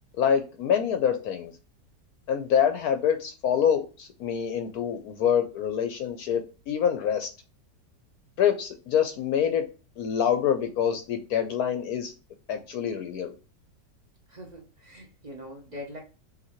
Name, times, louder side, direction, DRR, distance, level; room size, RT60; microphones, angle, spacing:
voice 1, 0.2-1.5 2.3-7.3 8.4-9.6 10.0-12.1 12.5-13.3, left 8 dB, 70° left, 6 dB, 1.0 m, -26 dB
voice 2, 14.3-16.0, left 1 dB, 45° right, 1 dB, 0.5 m, -42 dB
5.8 x 2.7 x 2.9 m, 0.33 s
omnidirectional pair, 1.9 m